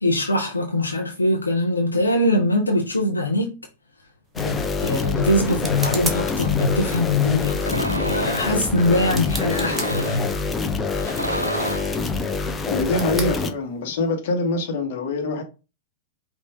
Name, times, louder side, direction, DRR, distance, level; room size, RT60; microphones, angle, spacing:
voice 1, 0.0-3.6 4.4-10.4, left 1 dB, 80° left, 0.7 m, -22 dB
sound 1, 4.3-14.1, right 2 dB, 10° right, 0.9 m, -38 dB
sound 2, 4.4-13.5, left 4 dB, 15° left, 0.6 m, -26 dB
sound 3, 7.6-8.5 9.4-10.3 10.9-12.0, equal, 90° right, 0.3 m, -29 dB
voice 2, 12.7-15.4, left 2 dB, 55° left, 1.2 m, -24 dB
5.3 x 2.5 x 3.5 m
figure-of-eight pair, 95°, 0 cm